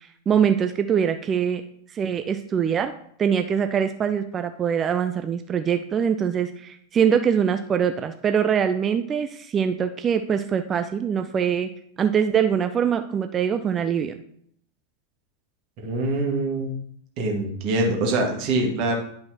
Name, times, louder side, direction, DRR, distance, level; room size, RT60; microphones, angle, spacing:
voice 1, 0.0-1.6 1.9-2.9 3.2-11.7 12.0-14.1, right 7 dB, 25° right, 8 dB, 0.4 m, -23 dB
voice 2, 15.8-16.7 17.2-18.9, right 2 dB, 40° right, 1 dB, 1.7 m, -24 dB
11.0 x 5.2 x 2.9 m, 0.65 s
figure-of-eight pair, 90°, 0 cm